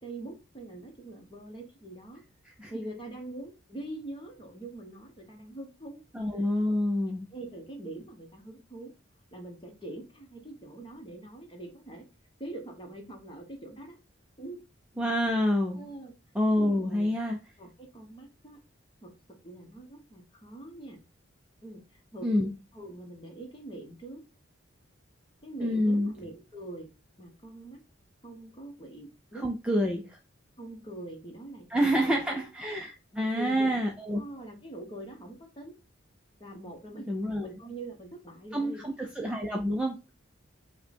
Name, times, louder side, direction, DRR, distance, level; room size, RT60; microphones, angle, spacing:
voice 1, 0.0-2.2 2.7-6.0 6.3-6.7 7.3-8.9 9.3-12.1 12.4-14.0 14.4-14.6 15.7-16.2 16.7-17.1 17.6-18.6 19.0-19.2 19.4-21.0 21.6-22.3 22.7-24.2 25.4-26.9 27.2-27.8 28.2-29.9 30.6-32.5 33.1-33.9 34.1-35.7 36.4-37.1 37.4-38.8, right 1 dB, 25° left, 2 dB, 1.0 m, -43 dB
voice 2, 6.1-7.3 15.0-15.8 16.3-17.4 22.2-22.5 25.6-26.1 29.4-30.0 31.7-34.2 37.1-37.5 38.5-40.0, equal, 5° right, 0 dB, 0.5 m, -27 dB
5.4 x 2.2 x 4.2 m, 0.28 s
head